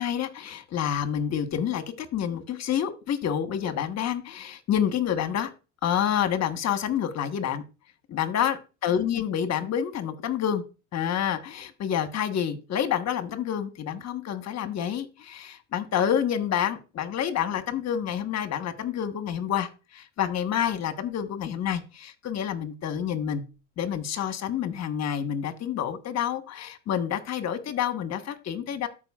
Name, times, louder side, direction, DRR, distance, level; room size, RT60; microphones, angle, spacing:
voice 1, 0.0-5.5 5.8-7.6 8.1-10.6 10.9-23.4 23.8-28.9, left 9 dB, 45° left, 9 dB, 1.2 m, -28 dB
13.0 x 4.9 x 2.4 m, 0.32 s
supercardioid pair, 90°, 39 cm